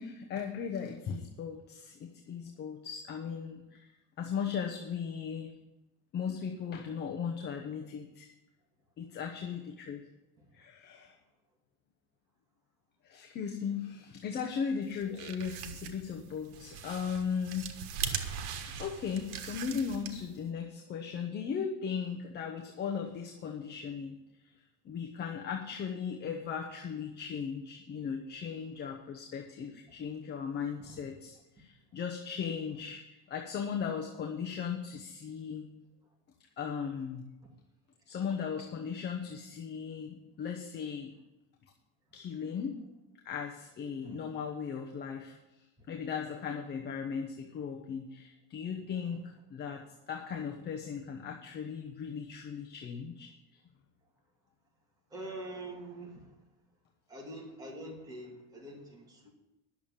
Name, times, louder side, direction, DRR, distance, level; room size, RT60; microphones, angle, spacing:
voice 1, 0.0-3.9 4.2-5.5 6.1-8.3 9.0-10.1 10.5-11.2 13.0-17.7 18.7-24.2 24.8-33.0 33.3-35.7 36.6-37.3 38.1-41.1 42.1-42.8 43.2-53.3, left 6 dB, 30° left, 2 dB, 1.0 m, -37 dB
sound 1, 14.9-20.4, right 8 dB, 75° right, 1.4 m, -40 dB
voice 2, 55.1-56.3 57.1-59.3, right 1 dB, 10° right, -2 dB, 2.3 m, -44 dB
11.0 x 7.1 x 7.1 m, 0.98 s
cardioid pair, 155°, 34 cm